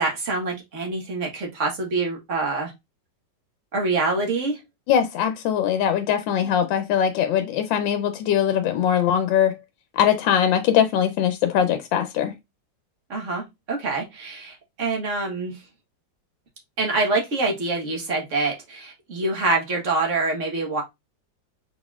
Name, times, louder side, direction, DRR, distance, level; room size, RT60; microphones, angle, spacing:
voice 1, 0.0-2.7 3.7-4.6 13.1-15.5 16.8-20.8, right 3 dB, 45° right, 1.4 m, -25 dB
voice 2, 4.9-9.6 9.9-12.3, left 9 dB, 85° left, 1.3 m, -21 dB
4.1 x 4.1 x 2.3 m
omnidirectional pair, 2.0 m